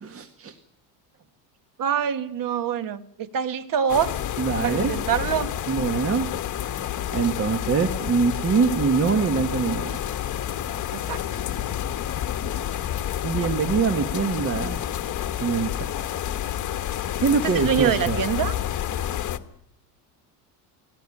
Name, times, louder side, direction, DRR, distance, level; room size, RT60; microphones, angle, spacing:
voice 1, 0.0-0.6 4.4-4.9 5.7-6.3 6.7-6.8 7.1-10.0 13.2-14.8 15.4-15.7 17.2-18.2, right 5 dB, 30° right, 1.6 m, -24 dB
voice 2, 1.8-4.1 4.6-5.5 10.9-11.4 17.5-18.5, right 8 dB, 45° right, 1.7 m, -25 dB
sound 1, 3.9-19.4, left 11 dB, 40° left, 1.5 m, -29 dB
19.0 x 17.5 x 9.9 m
supercardioid pair, 110°, 46 cm